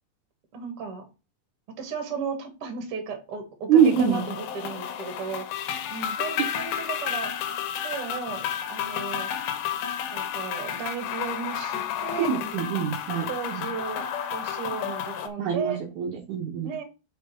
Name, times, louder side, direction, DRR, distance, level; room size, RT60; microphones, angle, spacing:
voice 1, 0.5-1.0 1.8-5.4 5.9-7.3 7.8-9.3 10.1-12.3 13.3-15.8 16.6-16.8, right 6 dB, 50° right, 4 dB, 1.7 m, -35 dB
voice 2, 3.7-4.3 12.2-13.6 15.4-16.7, right 7 dB, 80° right, 0 dB, 1.7 m, -24 dB
sound 1, 3.8-15.3, left 9 dB, 85° left, 3.1 m, -32 dB
5.9 x 5.1 x 4.7 m, 0.29 s
omnidirectional pair, 5.1 m